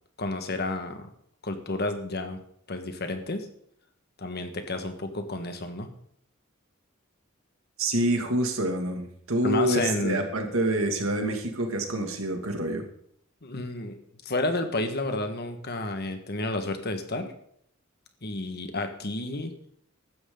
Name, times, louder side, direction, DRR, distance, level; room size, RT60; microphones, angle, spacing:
voice 1, 0.2-1.1 1.4-2.4 2.7-3.5 4.2-5.9 9.4-10.2 13.4-14.0 14.2-17.3 18.2-19.5, left 2 dB, 50° left, 7 dB, 1.6 m, -31 dB
voice 2, 7.8-12.9, right 1 dB, 75° right, 4 dB, 2.4 m, -27 dB
15.5 x 12.5 x 3.9 m, 0.69 s
head